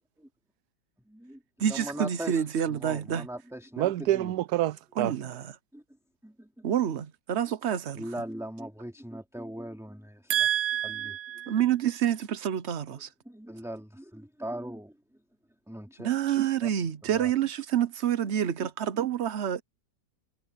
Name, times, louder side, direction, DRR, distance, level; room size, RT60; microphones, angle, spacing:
voice 1, 1.1-2.4 2.7-4.3 5.7-5.8 6.2-6.7 8.0-10.3 10.8-11.2 11.5-11.6 13.2-14.9 15.7-16.1 16.6-16.7 17.1-17.3, right 1 dB, ahead, 2.9 m, -40 dB
voice 2, 1.6-3.3 5.0-5.5 6.6-8.0 11.5-13.1 16.0-19.6, right 10 dB, 55° right, 1.0 m, -28 dB
voice 3, 3.8-5.1 10.3-11.5, right 13 dB, 85° right, 1.2 m, -27 dB
omnidirectional pair, 1.7 m